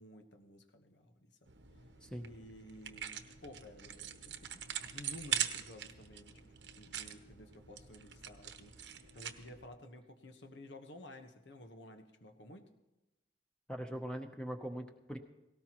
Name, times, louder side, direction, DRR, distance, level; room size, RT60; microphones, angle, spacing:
voice 1, 0.0-1.5 2.3-12.7, left 1 dB, 85° left, 6 dB, 1.3 m, -54 dB
sound 1, 1.5-9.7, right 9 dB, 80° right, 0.9 m, -43 dB
voice 2, 13.7-15.2, equal, 5° left, 4 dB, 0.8 m, -41 dB
17.5 x 17.5 x 3.1 m, 1.0 s
head